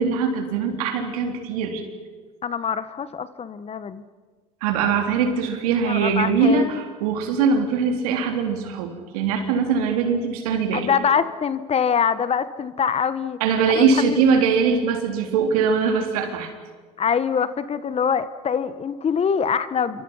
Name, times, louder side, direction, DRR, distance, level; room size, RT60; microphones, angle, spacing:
voice 1, 0.0-1.8 4.6-10.9 13.4-16.5, right 5 dB, 80° right, 4 dB, 3.8 m, -22 dB
voice 2, 2.4-4.0 5.9-6.8 10.7-13.4 13.7-14.2 17.0-20.0, left 7 dB, 35° left, 14 dB, 1.3 m, -24 dB
28.0 x 24.5 x 5.7 m, 1.4 s
hypercardioid pair, 80°, 19 cm